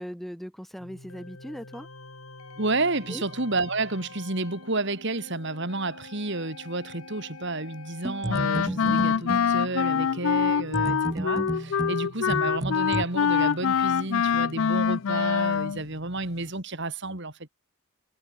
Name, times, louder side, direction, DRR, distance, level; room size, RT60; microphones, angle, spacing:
voice 1, 0.0-1.9 3.1-3.2 9.9-10.0, equal, ahead, 1.9 m, -39 dB
sound 1, 0.8-16.5, left 2 dB, 85° left, 4.7 m, -47 dB
voice 2, 2.6-17.5, right 2 dB, 55° right, 3.2 m, -31 dB
sound 2, 8.0-9.5 10.7-13.0, right 1 dB, 15° right, 0.6 m, -32 dB
Wind instrument woodwind instrument, 8.3-15.8, left 7 dB, 70° left, 0.4 m, -25 dB
head